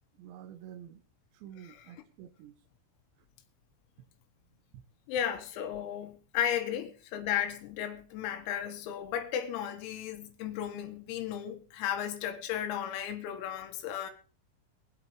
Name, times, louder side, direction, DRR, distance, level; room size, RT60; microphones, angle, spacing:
voice 1, 0.2-1.0 1.3-2.6 4.7-4.8, right 10 dB, 75° right, 2.7 m, -49 dB
voice 2, 5.1-14.1, left 10 dB, 90° left, 4.2 m, -34 dB
23.5 x 8.2 x 3.2 m
omnidirectional pair, 6.0 m